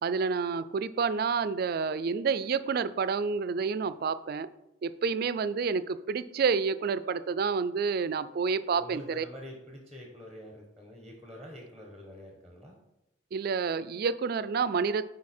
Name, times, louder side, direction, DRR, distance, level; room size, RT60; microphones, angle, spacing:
voice 1, 0.0-4.5 4.8-9.3 13.3-15.1, right 5 dB, 55° right, 15 dB, 0.3 m, -29 dB
voice 2, 8.8-12.8, left 1 dB, ahead, 0 dB, 1.0 m, -46 dB
9.6 x 4.1 x 4.3 m, 0.90 s
head